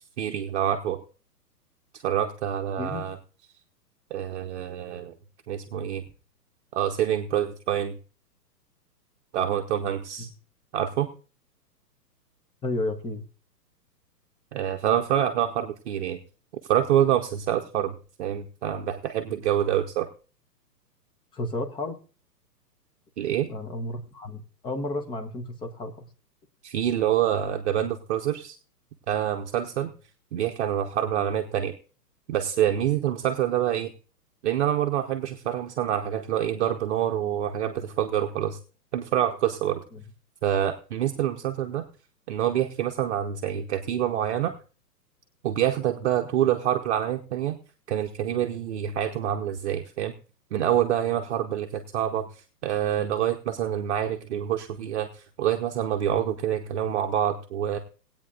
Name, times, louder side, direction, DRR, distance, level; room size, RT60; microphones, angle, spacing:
voice 1, 0.2-1.0 1.9-3.2 4.1-5.1 5.5-6.0 6.7-8.0 9.3-10.3 10.7-11.1 14.5-16.2 16.7-20.1 23.2-23.5 26.6-28.6 29.1-29.9 30.3-31.7 32.3-33.9 34.4-38.6 38.9-39.8 40.4-41.8 42.3-44.5 45.4-47.6 47.9-50.1 50.5-57.8, right 10 dB, 45° right, 5 dB, 0.9 m, -26 dB
voice 2, 12.6-13.2 21.3-22.0 23.5-26.1 39.9-40.0, left 2 dB, 10° left, 6 dB, 0.9 m, -32 dB
19.0 x 8.9 x 2.5 m, 0.37 s
figure-of-eight pair, 120°, 49 cm